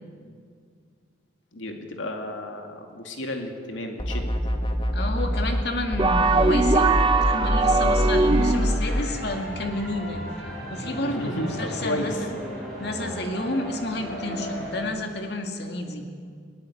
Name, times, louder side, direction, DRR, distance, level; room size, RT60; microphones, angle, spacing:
voice 1, 1.5-4.3 7.7-7.9 11.0-12.2, left 1 dB, 80° left, 3 dB, 2.5 m, -32 dB
sound 1, 4.0-5.7 5.9-9.0, equal, 25° left, 1.6 m, -25 dB
voice 2, 4.9-10.3 10.7-12.4 12.8-16.1, left 1 dB, 55° left, 4 dB, 2.2 m, -30 dB
sound 2, 6.0-8.9, right 3 dB, 25° right, 0.7 m, -21 dB
sound 3, 7.5-14.8, equal, ahead, 7.2 m, -36 dB
22.0 x 18.0 x 8.5 m, 2.1 s
head